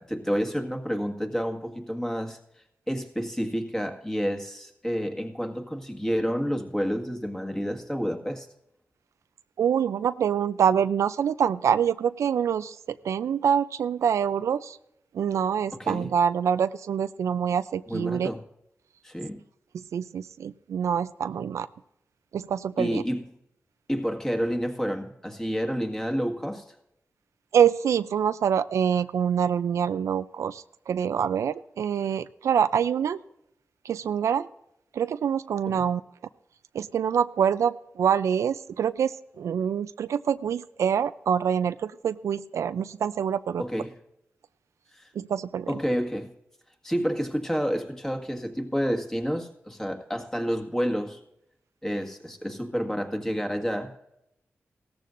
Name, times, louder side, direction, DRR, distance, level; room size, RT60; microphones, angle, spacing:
voice 1, 0.0-2.4 2.9-8.5 15.8-16.1 17.9-18.4 19.0-19.4 22.8-23.2 23.9-26.6 35.7-35.9 43.6-43.9 44.9-45.1 45.7-46.3 46.8-51.2 51.8-54.0, equal, 10° left, 1.8 m, -29 dB
voice 2, 9.6-12.8 13.0-14.8 15.1-18.3 19.7-21.7 22.3-23.0 27.5-33.2 33.8-34.5 34.9-36.0 36.7-43.6 45.2-45.7, right 8 dB, 90° right, 0.4 m, -25 dB
17.0 x 14.0 x 2.6 m
cardioid pair, 65°, 5 cm